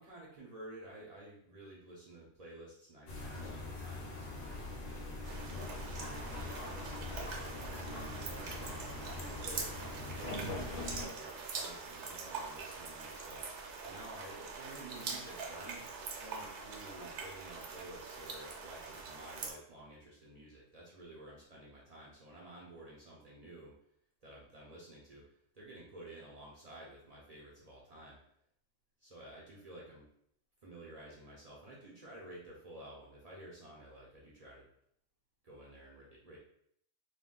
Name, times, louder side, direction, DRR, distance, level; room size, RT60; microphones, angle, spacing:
voice 1, 0.0-5.6 6.6-13.5 13.8-15.9 16.2-23.7 24.2-25.2 25.5-28.2 29.0-30.1 30.6-34.6 35.4-36.4, right 1 dB, 50° right, -5 dB, 0.4 m, -52 dB
sound 1, 3.1-11.0, left 2 dB, 50° left, 0.7 m, -42 dB
sound 2, 5.2-19.5, right 4 dB, 65° right, 0.8 m, -44 dB
2.3 x 2.3 x 3.6 m, 0.70 s
omnidirectional pair, 1.4 m